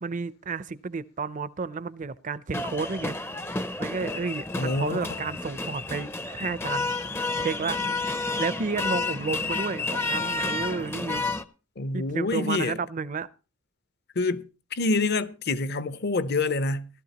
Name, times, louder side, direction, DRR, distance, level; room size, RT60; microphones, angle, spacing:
voice 1, 0.0-3.2 3.8-6.9 7.4-11.3 11.9-13.3, right 4 dB, 40° right, 0.5 m, -32 dB
sound 1, 2.5-11.4, left 3 dB, 10° left, 0.5 m, -30 dB
voice 2, 4.6-5.0 11.8-12.8 14.2-16.9, left 3 dB, 50° left, 0.7 m, -27 dB
17.0 x 12.5 x 2.9 m
head